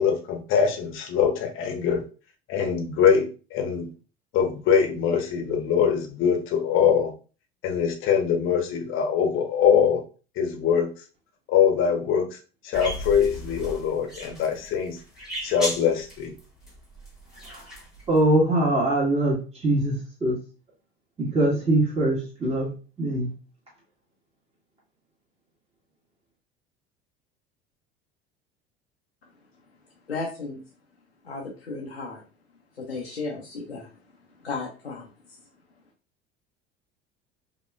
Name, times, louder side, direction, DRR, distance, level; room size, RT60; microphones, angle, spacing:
voice 1, 0.0-2.1 2.5-3.9 4.3-7.1 7.6-10.0 10.4-10.9 11.5-12.4 12.6-15.0 15.4-16.3, left 7 dB, 40° left, 4 dB, 1.0 m, -23 dB
sound 1, 12.7-18.2, equal, ahead, 2.1 m, -35 dB
voice 2, 18.1-20.4 21.2-22.7 23.0-23.3, right 1 dB, 20° right, -5 dB, 2.1 m, -22 dB
voice 3, 30.1-30.6 31.2-32.2 32.7-33.9 34.4-35.4, left 3 dB, 85° left, -2 dB, 0.8 m, -34 dB
5.0 x 2.8 x 2.3 m, 0.35 s
figure-of-eight pair, 65°, 31 cm